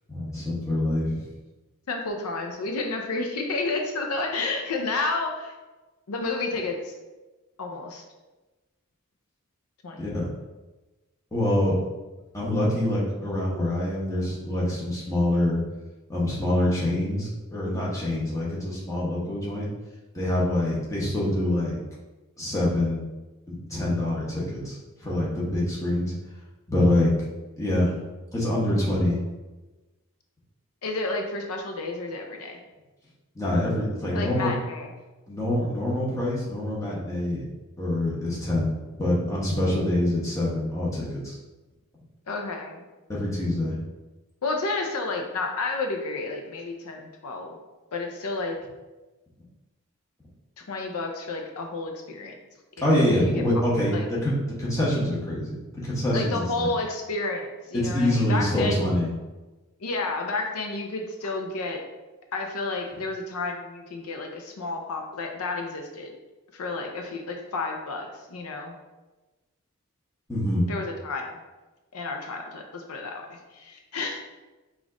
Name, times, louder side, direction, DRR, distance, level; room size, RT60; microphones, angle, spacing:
voice 1, 0.1-1.2 10.0-10.3 11.3-11.8 12.3-15.6 16.1-19.7 20.1-21.8 22.4-23.0 23.5-26.1 26.7-27.1 27.6-27.9 28.3-29.2 33.3-34.5 35.3-37.4 37.8-41.4 43.1-43.8 52.8-54.3 54.6-55.6 55.8-56.7 57.8-59.1 70.3-70.7, left 1 dB, 15° left, -6 dB, 0.9 m, -25 dB
voice 2, 1.9-5.5 6.1-6.9 7.6-8.0 9.8-10.0 30.8-32.6 34.1-34.9 42.3-42.9 44.4-47.6 47.9-48.6 50.6-52.3 52.8-53.4 53.9-54.0 56.1-58.8 59.8-61.8 62.3-66.1 66.5-68.7 70.7-71.3 71.9-74.2, left 3 dB, 80° left, 3 dB, 0.5 m, -31 dB
5.1 x 2.5 x 3.7 m, 1.1 s
head